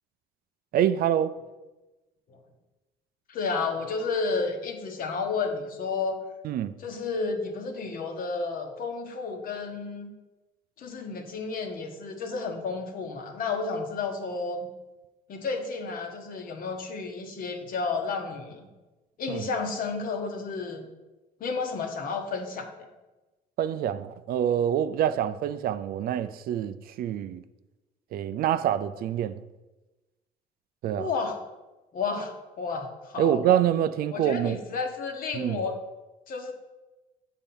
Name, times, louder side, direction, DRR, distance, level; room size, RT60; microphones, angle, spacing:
voice 1, 0.7-1.4 6.4-6.7 19.3-19.5 23.6-27.4 28.1-29.4 30.8-31.1 33.2-34.6 35.3-35.6, right 10 dB, 60° right, 0.4 m, -26 dB
voice 2, 3.3-6.2 6.8-10.1 10.8-14.7 15.3-18.7 19.2-20.9 21.4-22.9 31.0-31.4 31.9-33.4 34.1-35.8 36.3-36.5, left 4 dB, 55° left, 1.1 m, -31 dB
7.2 x 4.3 x 5.4 m
cardioid pair, 110°, 17 cm